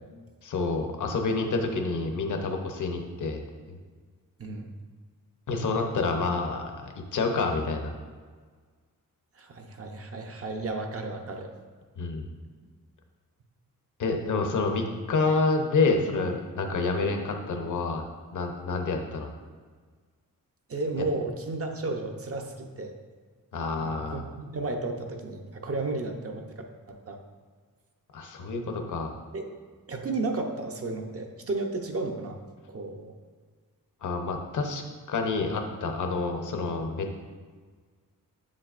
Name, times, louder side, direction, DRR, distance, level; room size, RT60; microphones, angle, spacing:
voice 1, 0.4-3.4 3.7-3.8 5.5-7.9 12.0-12.3 14.0-18.0 18.3-19.3 23.5-24.2 28.1-29.1 34.0-34.8 35.1-37.2, left 3 dB, 60° left, 4 dB, 0.8 m, -28 dB
voice 2, 4.4-4.7 9.4-11.5 20.7-22.9 23.8-26.4 26.9-27.2 29.3-29.6 29.9-32.4 32.7-33.1, right 2 dB, 40° right, 3 dB, 0.7 m, -33 dB
7.4 x 7.1 x 2.5 m, 1.5 s
wide cardioid pair, 155°, 35 cm